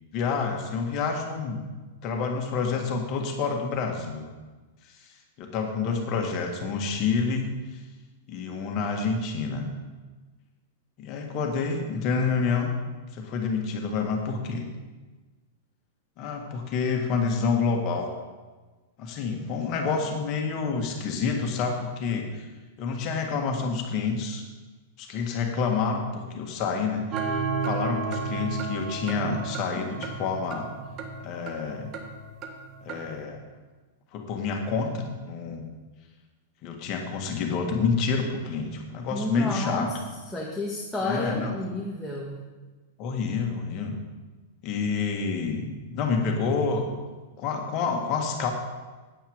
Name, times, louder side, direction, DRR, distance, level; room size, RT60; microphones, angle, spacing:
voice 1, 0.1-1.6 2.0-4.3 5.4-7.8 8.3-9.7 11.0-12.7 13.1-14.6 16.2-18.1 19.0-22.5 22.8-24.4 25.0-30.7 31.2-31.9 32.9-33.4 34.1-35.7 36.6-39.9 41.0-41.6 43.0-44.0 44.6-47.0 47.4-48.5, left 5 dB, 45° left, 3 dB, 1.8 m, -28 dB
sound 1, 27.1-33.1, right 4 dB, 40° right, 1.5 m, -33 dB
voice 2, 39.1-39.9 40.3-42.4, left 1 dB, 5° left, -4 dB, 1.6 m, -31 dB
9.3 x 9.0 x 5.1 m, 1.3 s
hypercardioid pair, 105°, 0 cm